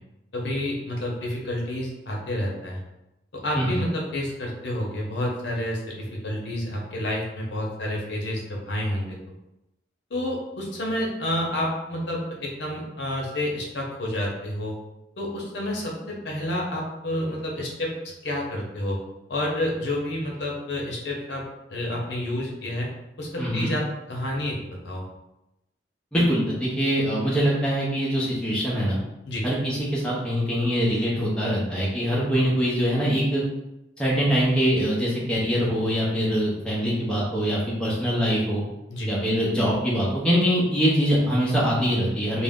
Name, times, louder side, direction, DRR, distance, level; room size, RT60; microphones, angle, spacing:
voice 1, 0.3-2.8 3.3-9.2 10.1-14.8 15.2-17.9 18.2-19.0 19.3-21.4 21.7-22.9 23.2-24.6 24.8-25.1 29.3-29.5 38.9-39.1, left 1 dB, 75° left, -2 dB, 0.7 m, -29 dB
voice 2, 23.4-23.7 26.1-29.0 29.4-33.4 34.0-38.6 39.1-42.4, equal, 5° left, -6 dB, 0.6 m, -23 dB
2.5 x 2.0 x 3.5 m, 0.92 s
head